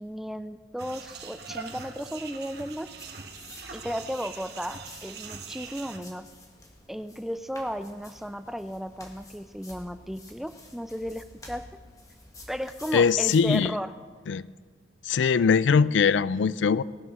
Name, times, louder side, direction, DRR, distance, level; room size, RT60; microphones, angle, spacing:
voice 1, 0.0-2.9 3.7-6.3 6.9-11.7 12.5-13.9, equal, ahead, 11 dB, 0.3 m, -35 dB
sound 1, 0.8-6.0, right 5 dB, 60° right, 1.2 m, -42 dB
sound 2, 2.9-13.6, left 2 dB, 20° left, 1.7 m, -51 dB
voice 2, 12.9-13.7 14.3-14.4 15.0-16.8, left 6 dB, 75° left, 18 dB, 0.4 m, -21 dB
19.0 x 7.3 x 6.2 m, 1.5 s
head